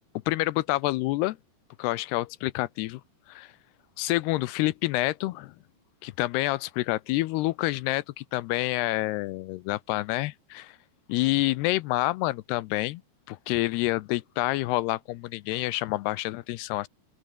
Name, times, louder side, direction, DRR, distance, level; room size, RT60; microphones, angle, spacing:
voice 1, 0.3-1.4 1.8-3.0 3.3-3.5 4.0-5.5 6.0-10.8 11.1-13.0 13.3-16.9, left 18 dB, 80° left, 2.6 m, -28 dB
open air
omnidirectional pair, 5.0 m